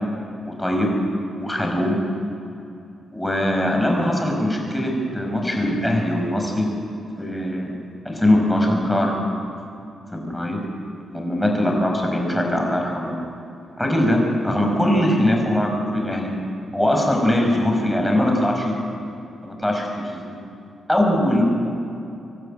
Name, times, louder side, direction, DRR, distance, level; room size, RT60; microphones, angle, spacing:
voice 1, 0.4-0.9 1.4-2.0 3.1-6.7 7.2-7.7 8.0-9.2 10.1-10.6 11.1-13.2 13.8-16.3 16.7-18.7 19.4-20.4 20.9-21.4, left 1 dB, 10° left, 1 dB, 6.3 m, -21 dB
26.5 x 12.0 x 9.0 m, 2.7 s
cardioid pair, 65°, 0 cm